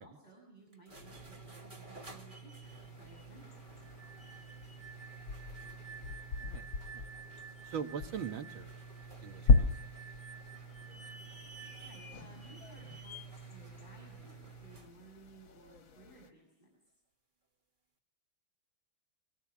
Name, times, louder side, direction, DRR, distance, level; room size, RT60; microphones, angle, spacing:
voice 1, 0.0-3.8 11.8-16.9, right 2 dB, 20° left, -1 dB, 6.9 m, -58 dB
sound 1, 0.7-15.0, right 4 dB, 25° right, 2.1 m, -51 dB
sound 2, 2.6-16.3, left 4 dB, 75° left, 2.2 m, -37 dB
sound 3, 3.8-12.0, right 6 dB, 55° left, 2.6 m, -53 dB
voice 2, 7.6-8.7 9.2-9.7, right 7 dB, 85° right, 6 dB, 2.3 m, -41 dB
24.0 x 18.5 x 7.5 m, 0.73 s
omnidirectional pair, 2.2 m